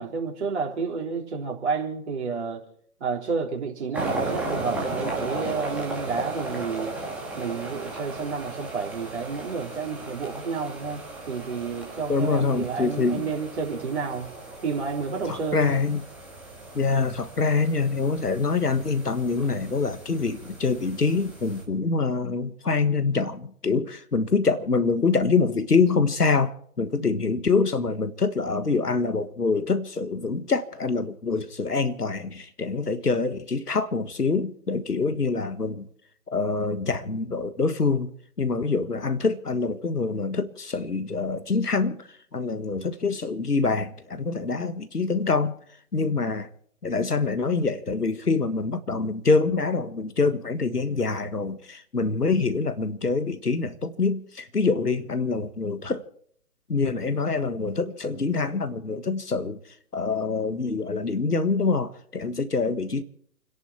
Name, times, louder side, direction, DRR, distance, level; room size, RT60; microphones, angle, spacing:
voice 1, 0.0-2.7 3.0-6.9 7.4-14.3 14.6-15.6, right 5 dB, 45° right, 3.7 m, -30 dB
sound 1, 3.9-21.6, right 2 dB, 5° right, 2.0 m, -36 dB
voice 2, 12.1-13.3 15.3-16.1 16.7-35.9 36.3-38.1 38.4-42.1 42.3-45.5 45.9-46.5 46.8-56.0 56.7-59.6 59.9-63.0, left 4 dB, 80° left, 1.6 m, -25 dB
29.5 x 11.0 x 4.4 m
figure-of-eight pair, 145°, 46 cm